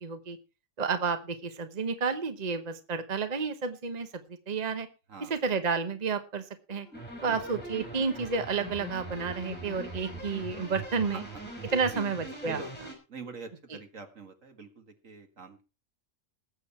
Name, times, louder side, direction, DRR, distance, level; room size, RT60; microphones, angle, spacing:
voice 1, 0.0-0.4 0.8-4.1 4.5-4.9 5.3-6.4 6.7-6.9 7.2-11.2 11.7-12.6, right 5 dB, 35° right, 9 dB, 1.1 m, -31 dB
sound 1, 6.8-12.7, left 2 dB, 50° left, 5.0 m, -54 dB
sound 2, 6.9-12.9, right 1 dB, 5° left, 5.6 m, -41 dB
voice 2, 13.1-15.6, right 4 dB, 75° right, 6 dB, 2.3 m, -44 dB
19.5 x 8.1 x 4.4 m, 0.32 s
omnidirectional pair, 1.3 m